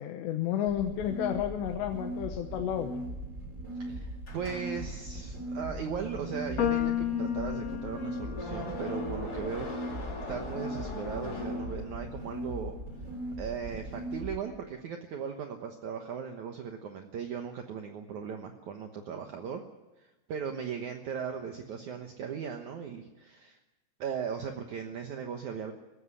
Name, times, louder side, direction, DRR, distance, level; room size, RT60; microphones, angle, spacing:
voice 1, 0.0-3.0, left 10 dB, 80° left, 4 dB, 3.2 m, -31 dB
sound 1, 0.7-14.4, right 1 dB, 20° right, 3.5 m, -39 dB
sound 2, 4.2-12.3, left 2 dB, 25° left, 2.8 m, -42 dB
voice 2, 4.3-9.7 10.3-12.8 13.4-19.6 20.0-23.6 24.0-25.7, right 7 dB, 70° right, 4 dB, 1.8 m, -38 dB
sound 3, 6.6-12.9, left 12 dB, 55° left, 2.0 m, -36 dB
19.0 x 16.0 x 9.8 m, 1.1 s
omnidirectional pair, 5.2 m